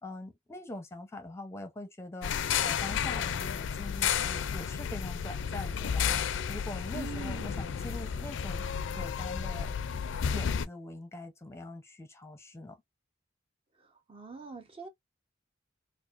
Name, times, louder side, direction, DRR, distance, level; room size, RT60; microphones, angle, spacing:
voice 1, 0.0-2.3 2.6-6.2 6.5-8.7 9.0-9.7 10.3-12.8, left 2 dB, 15° left, 0.7 m, -43 dB
sound 1, 2.2-10.7, left 7 dB, 65° left, 0.4 m, -32 dB
voice 2, 6.9-7.7 13.8-14.9, right 4 dB, 30° right, 0.8 m, -43 dB
4.7 x 2.1 x 2.5 m
head